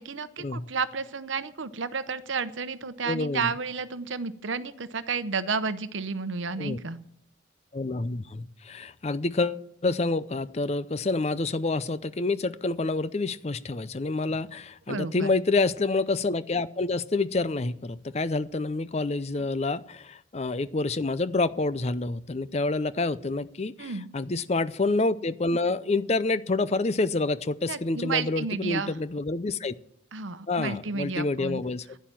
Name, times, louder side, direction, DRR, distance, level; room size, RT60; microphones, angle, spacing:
voice 1, 0.0-7.0 14.9-15.3 23.8-24.1 27.6-28.9 30.1-31.6, right 5 dB, 80° right, 13 dB, 0.8 m, -31 dB
voice 2, 3.1-3.5 6.6-6.8 7.7-29.7 30.5-31.9, left 3 dB, 35° left, 15 dB, 0.5 m, -28 dB
11.5 x 10.5 x 7.5 m, 0.72 s
head